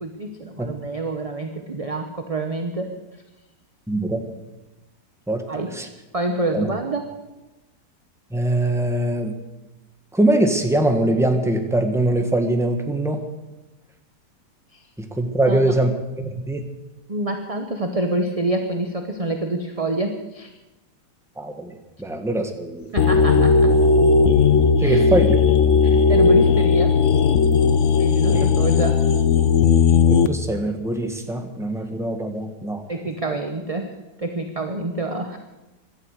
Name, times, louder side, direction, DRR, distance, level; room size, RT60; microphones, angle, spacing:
voice 1, 0.0-2.9 5.5-5.7 6.1-7.1 14.7-14.8 15.5-15.6 17.1-20.5 22.9-23.7 24.8-25.1 25.8-27.0 28.0-29.0 32.9-33.9 34.2-35.4, right 2 dB, 25° right, 5 dB, 0.9 m, -27 dB
voice 2, 3.9-4.2 5.3-5.4 5.7-5.9 6.5-6.7 8.3-9.3 10.1-13.2 15.0-16.6 21.4-22.9 24.8-25.4 28.3-28.5 29.9-32.8 33.3-33.4, right 1 dB, ahead, 4 dB, 1.4 m, -22 dB
sound 1, 23.0-30.3, left 5 dB, 55° left, 0.9 m, -16 dB
16.5 x 12.5 x 6.5 m, 1.0 s
omnidirectional pair, 1.8 m